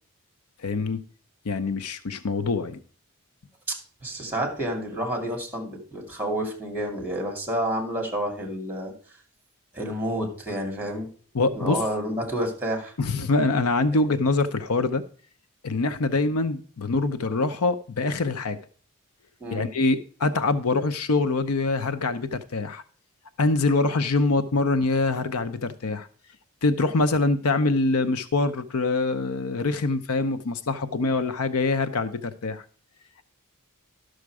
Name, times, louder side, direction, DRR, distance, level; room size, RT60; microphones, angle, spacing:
voice 1, 0.6-1.0 1.5-2.8 11.3-11.8 13.0-15.0 15.6-18.6 19.5-22.8 23.4-26.1 26.6-32.6, left 3 dB, 70° left, 12 dB, 0.7 m, -24 dB
voice 2, 4.0-8.9 9.7-11.1 11.5-12.9 19.4-19.7, right 1 dB, 10° right, 2 dB, 2.5 m, -29 dB
11.5 x 6.5 x 4.8 m, 0.42 s
head